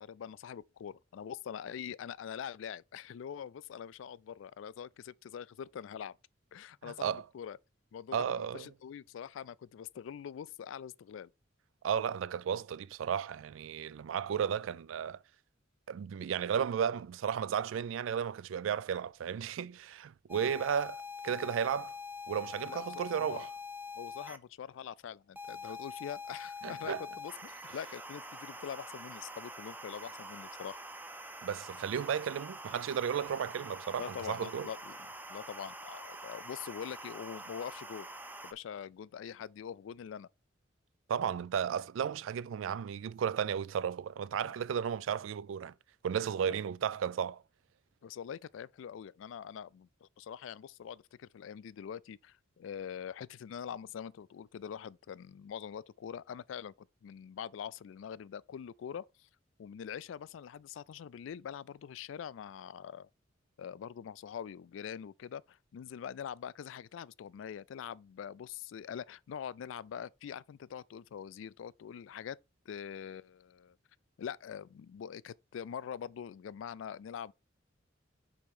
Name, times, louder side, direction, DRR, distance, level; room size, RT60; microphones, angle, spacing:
voice 1, 0.0-6.2 6.5-7.6 7.9-11.3 22.7-23.5 24.0-30.8 34.0-35.0 35.3-38.1 38.4-40.3 46.5-46.6 48.0-56.7 57.0-59.3 59.6-63.1 63.6-72.4 72.7-73.8 74.2-77.3, left 8 dB, 75° left, 0.3 m, -44 dB
voice 2, 6.8-7.2 8.1-8.7 11.8-15.2 15.9-22.0 22.3-23.5 26.6-27.1 31.4-34.7 41.1-45.7 46.0-47.4, right 8 dB, 80° right, 0.3 m, -34 dB
sound 1, 20.3-24.4 25.4-38.5, left 2 dB, 10° right, 0.5 m, -45 dB
4.9 x 4.3 x 5.3 m
head